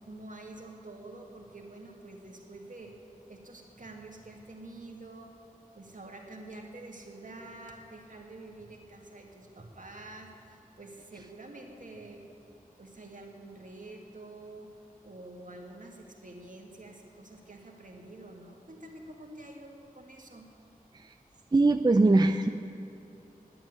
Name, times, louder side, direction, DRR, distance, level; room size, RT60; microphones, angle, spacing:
voice 1, 0.0-3.0 3.3-5.3 5.7-12.2 12.8-14.7 15.0-20.5, right 2 dB, 60° right, 1 dB, 2.1 m, -47 dB
voice 2, 21.5-22.5, right 2 dB, 30° right, 8 dB, 0.4 m, -22 dB
11.0 x 9.0 x 9.4 m, 2.8 s
wide cardioid pair, 50°, 15 cm